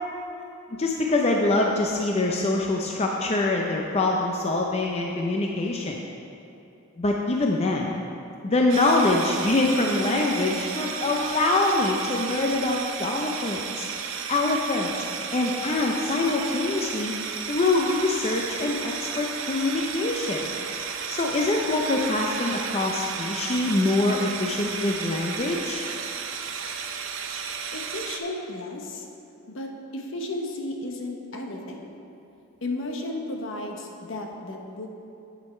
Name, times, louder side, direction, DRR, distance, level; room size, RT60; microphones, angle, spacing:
voice 1, 0.8-6.0 7.0-8.0 8.4-14.9 15.3-17.1 17.5-20.5 21.1-25.8, left 2 dB, 30° left, 0 dB, 0.5 m, -24 dB
sound 1, 8.7-28.2, right 6 dB, 65° right, 0.6 m, -33 dB
voice 2, 27.7-29.1 29.5-31.9 32.6-34.9, left 2 dB, 65° left, 2 dB, 1.0 m, -34 dB
8.4 x 7.6 x 4.3 m, 2.8 s
head